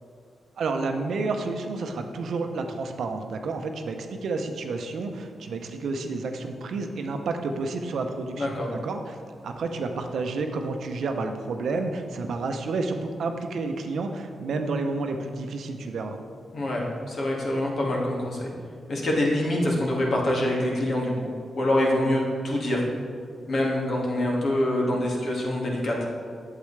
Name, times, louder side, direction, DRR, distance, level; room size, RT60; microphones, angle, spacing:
voice 1, 0.6-9.2 9.4-16.2, right 3 dB, 80° right, 5 dB, 0.7 m, -30 dB
voice 2, 8.3-8.7 16.5-18.5 18.9-22.8 23.5-26.0, left 1 dB, 65° left, -3 dB, 1.9 m, -25 dB
8.4 x 7.6 x 3.2 m, 2.3 s
cardioid pair, 80°, 0 cm